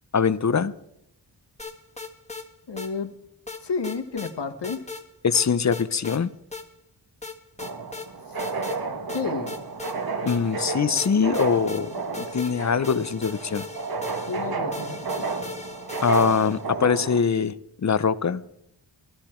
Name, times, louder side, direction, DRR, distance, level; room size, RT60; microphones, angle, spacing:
voice 1, 0.1-0.7 5.2-6.3 10.2-13.7 16.0-18.4, left 6 dB, 40° left, 0.6 m, -23 dB
sound 1, 1.6-2.5 2.8-2.9 3.5-4.3 4.6-5.0 5.3-6.2 6.5-6.7 7.2-8.1 8.4-8.8 9.1-10.6 11.0-16.7, left 4 dB, 15° left, 1.5 m, -38 dB
voice 2, 2.7-3.2 3.6-4.9 8.3-8.4 9.1-9.6 14.3-15.3, left 5 dB, 80° left, 1.4 m, -31 dB
sound 2, 7.6-17.2, right 4 dB, 60° right, 1.3 m, -32 dB
14.5 x 13.0 x 4.4 m
wide cardioid pair, 65°, 41 cm